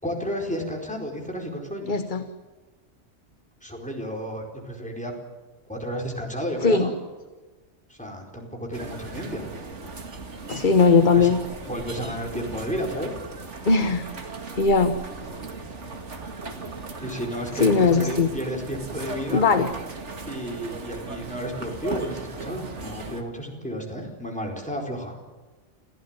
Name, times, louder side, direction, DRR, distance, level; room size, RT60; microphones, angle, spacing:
voice 1, 0.0-2.0 3.6-5.1 5.7-6.9 7.9-9.5 11.1-11.3 11.7-13.2 17.0-19.4 20.3-25.2, equal, 5° left, 1 dB, 4.6 m, -32 dB
voice 2, 1.9-2.2 6.6-6.9 10.5-11.4 13.7-14.1 14.6-14.9 17.5-18.3 19.3-19.7, left 4 dB, 40° left, 9 dB, 1.2 m, -19 dB
sound 1, 8.7-23.2, right 3 dB, 70° right, 2.4 m, -37 dB
27.5 x 15.0 x 9.0 m, 1.3 s
omnidirectional pair, 1.3 m